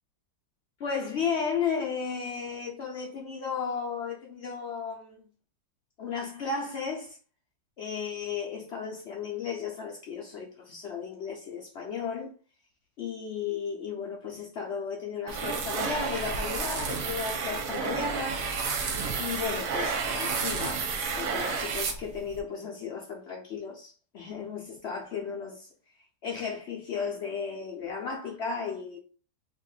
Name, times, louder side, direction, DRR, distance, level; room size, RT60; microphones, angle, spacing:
voice 1, 0.8-5.2 6.0-7.2 7.8-12.3 13.0-18.5 19.2-25.7 26.2-29.0, left 6 dB, 75° left, 0.6 m, -34 dB
sound 1, 15.3-22.4, right 5 dB, 65° right, 0.9 m, -31 dB
2.8 x 2.5 x 3.8 m
omnidirectional pair, 1.8 m